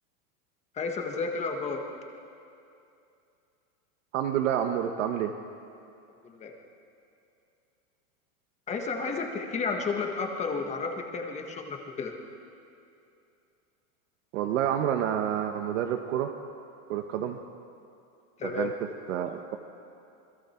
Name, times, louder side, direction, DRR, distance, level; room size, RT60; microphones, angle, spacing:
voice 1, 0.7-1.8 6.2-6.5 8.7-12.1 18.4-18.7, left 4 dB, 15° left, 3 dB, 1.5 m, -32 dB
voice 2, 4.1-5.3 14.3-16.3 16.9-17.4 18.4-19.6, right 10 dB, 55° right, 5 dB, 1.2 m, -29 dB
28.0 x 21.0 x 4.5 m, 2.6 s
supercardioid pair, 165°, 45 cm